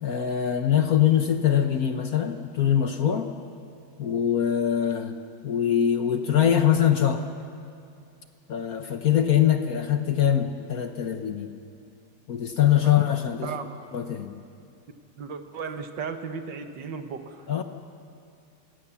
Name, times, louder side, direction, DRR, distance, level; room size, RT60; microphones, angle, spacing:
voice 1, 0.0-3.3 4.0-5.1 5.4-7.3 8.5-11.5 12.3-13.5 13.9-14.3 17.5-17.6, left 10 dB, 55° left, 7 dB, 1.2 m, -23 dB
voice 2, 13.4-13.7 15.2-17.5, right 5 dB, 65° right, 7 dB, 1.8 m, -35 dB
29.0 x 16.5 x 7.1 m, 2.5 s
omnidirectional pair, 2.2 m